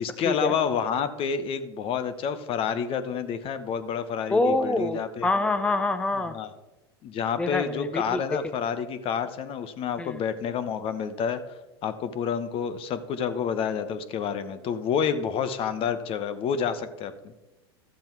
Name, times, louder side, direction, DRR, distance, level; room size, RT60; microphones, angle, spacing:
voice 1, 0.0-5.3 6.3-6.5 7.0-11.4 11.8-17.3, left 7 dB, 40° left, 12 dB, 1.0 m, -29 dB
voice 2, 4.3-6.3 7.4-8.2 10.0-10.2, left 2 dB, 10° left, 10 dB, 0.6 m, -26 dB
12.5 x 7.5 x 4.6 m, 1.1 s
hypercardioid pair, 95°, 14 cm